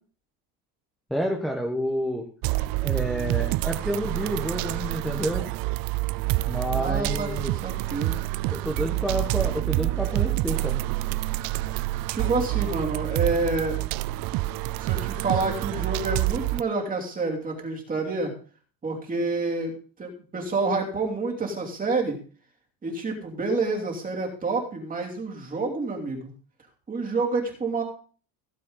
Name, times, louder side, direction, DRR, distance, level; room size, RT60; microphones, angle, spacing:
voice 1, 1.1-2.2 2.8-5.5 6.4-7.5 8.5-10.8, equal, ahead, 2 dB, 1.3 m, -29 dB
sound 1, 2.4-16.6, right 19 dB, 55° right, 0.5 m, -27 dB
voice 2, 6.7-7.3 7.6-8.2 12.1-13.8 14.8-18.3 18.8-22.2 22.8-26.3 26.9-27.8, right 3 dB, 20° right, 1 dB, 2.9 m, -28 dB
16.5 x 7.6 x 4.0 m, 0.40 s
cardioid pair, 150°, 44 cm